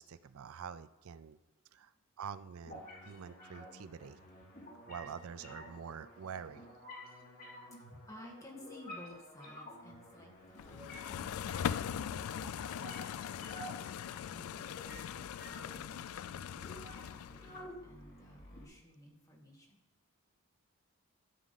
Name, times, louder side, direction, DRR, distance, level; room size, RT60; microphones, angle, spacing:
voice 1, 0.0-1.4 1.7-1.9 2.2-4.2 4.9-6.6, right 7 dB, 80° right, 14 dB, 0.4 m, -46 dB
sound 1, 2.6-18.6, equal, 45° left, 3.0 m, -51 dB
voice 2, 8.1-10.3 10.6-11.8 14.1-19.8, left 1 dB, 15° left, -1 dB, 1.8 m, -56 dB
sound 2, 10.6-17.6, left 9 dB, 80° left, 0.3 m, -40 dB
13.0 x 7.4 x 4.1 m, 1.0 s
head